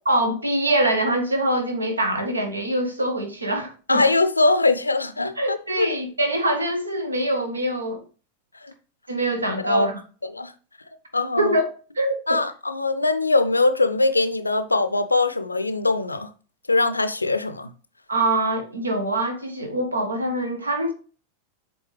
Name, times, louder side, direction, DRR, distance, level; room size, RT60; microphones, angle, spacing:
voice 1, 0.0-4.0 5.4-8.0 9.1-10.0 11.4-11.7 11.9-12.2 18.1-20.9, right 1 dB, 80° right, 1.2 m, -24 dB
voice 2, 3.9-5.9 8.6-8.7 9.6-9.9 10.3-10.5 11.1-11.5 12.3-16.3 16.7-17.7, left 3 dB, 80° left, 0.5 m, -22 dB
7.7 x 3.8 x 3.2 m
figure-of-eight pair, 90°, 0 cm